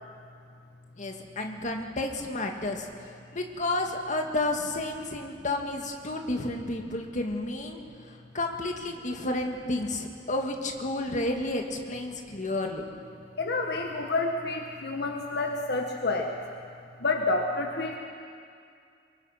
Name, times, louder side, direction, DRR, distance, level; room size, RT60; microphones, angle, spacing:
voice 1, 1.0-2.9 3.3-7.8 8.3-12.8, left 2 dB, 45° left, 2 dB, 1.9 m, -31 dB
voice 2, 13.4-16.4 17.0-18.0, left 3 dB, 65° left, 2 dB, 1.4 m, -29 dB
23.5 x 22.5 x 5.8 m, 2.4 s
head